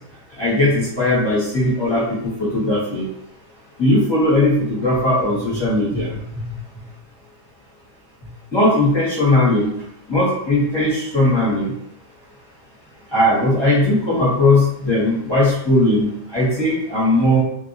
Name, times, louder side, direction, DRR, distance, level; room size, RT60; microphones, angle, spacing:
voice 1, 0.4-3.1 3.8-6.2 8.5-9.7 10.1-11.7 13.1-17.4, left 1 dB, 20° left, -8 dB, 1.0 m, -18 dB
2.7 x 2.6 x 2.6 m, 0.74 s
omnidirectional pair, 1.8 m